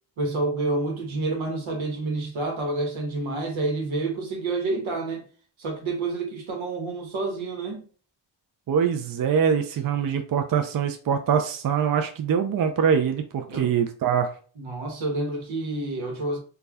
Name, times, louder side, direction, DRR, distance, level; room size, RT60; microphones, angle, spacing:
voice 1, 0.2-5.2 5.6-7.9 13.5-13.7 14.6-16.4, right 2 dB, 80° right, 1.0 m, -28 dB
voice 2, 8.7-14.3, right 7 dB, 50° right, 0.5 m, -23 dB
2.4 x 2.2 x 3.3 m
cardioid pair, 50°, 47 cm